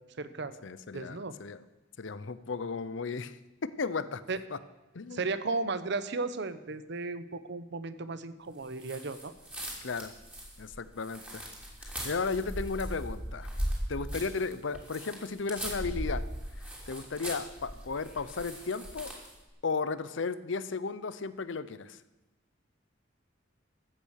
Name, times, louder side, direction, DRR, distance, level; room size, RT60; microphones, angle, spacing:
voice 1, 0.0-0.6 0.9-1.3 4.3-4.4 5.1-9.3, right 3 dB, 60° right, 13 dB, 0.8 m, -35 dB
voice 2, 0.6-1.6 2.0-3.4 3.6-4.2 4.5-4.6 4.9-5.2 9.8-10.1 10.6-11.4 11.8-13.5 13.9-16.2 16.9-19.1 19.6-22.0, left 4 dB, 70° left, 15 dB, 0.7 m, -34 dB
sound 1, 8.8-19.4, equal, 5° right, 3.1 m, -39 dB
14.5 x 8.7 x 6.4 m, 1.1 s
head